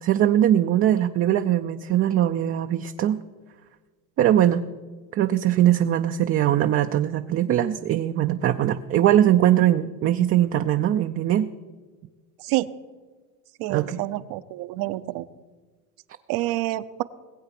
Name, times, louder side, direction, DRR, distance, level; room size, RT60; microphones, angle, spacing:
voice 1, 0.0-3.2 4.2-4.6 5.1-11.5 13.7-14.0, right 11 dB, 30° right, 7 dB, 0.5 m, -21 dB
voice 2, 13.6-15.2 16.3-17.0, right 17 dB, 60° right, 14 dB, 0.8 m, -27 dB
20.0 x 7.9 x 5.9 m, 1.4 s
supercardioid pair, 110°, 46 cm